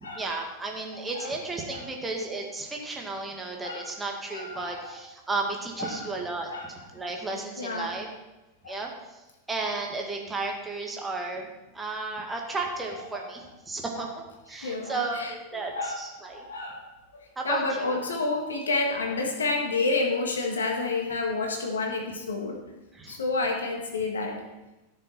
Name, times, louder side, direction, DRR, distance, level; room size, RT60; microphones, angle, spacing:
voice 1, 0.0-8.1 8.6-11.5 11.7-16.5 17.4-17.9 22.9-23.2, right 3 dB, 15° right, 1 dB, 1.9 m, -34 dB
voice 2, 0.9-1.3 1.7-1.8 3.6-3.9 4.3-4.9 5.8-6.0 6.5-6.7 6.9-7.0 7.6-7.9 8.6-8.8 13.1-13.3 14.6-15.3 15.7-16.9 17.4-22.6 23.1-24.4, left 3 dB, 70° left, 2 dB, 1.7 m, -29 dB
14.0 x 6.6 x 4.3 m, 1.0 s
figure-of-eight pair, 90°, 0 cm